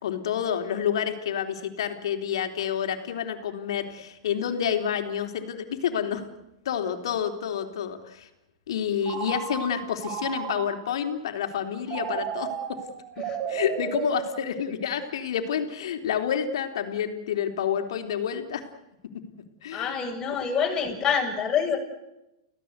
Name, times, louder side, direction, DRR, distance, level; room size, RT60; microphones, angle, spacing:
voice 1, 0.0-6.2 6.7-8.3 8.7-12.8 13.5-18.6 19.6-20.4, left 8 dB, 75° left, 7 dB, 3.7 m, -29 dB
Telephone, 9.0-11.0 11.9-14.9, right 8 dB, 40° right, 4.7 m, -34 dB
voice 2, 19.7-21.8, left 7 dB, 25° left, 1 dB, 7.9 m, -26 dB
30.0 x 17.0 x 8.3 m, 0.92 s
hypercardioid pair, 125°, 3 cm